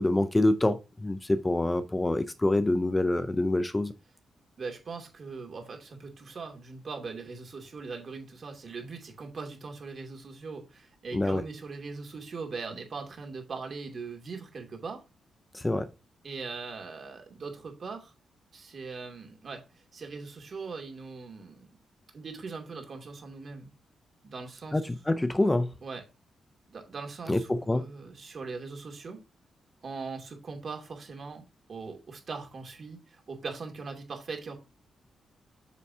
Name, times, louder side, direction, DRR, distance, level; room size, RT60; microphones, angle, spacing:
voice 1, 0.0-3.9 11.1-11.4 15.5-15.9 24.7-25.7 27.3-27.9, left 1 dB, 15° left, 0.5 m, -26 dB
voice 2, 4.6-15.0 16.2-18.1 18.5-19.6 19.9-21.7 22.1-23.7 24.2-24.8 25.8-26.0 26.7-29.2 29.8-34.6, right 4 dB, 50° right, 2.5 m, -40 dB
8.3 x 6.8 x 2.8 m
cardioid pair, 115°, 0 cm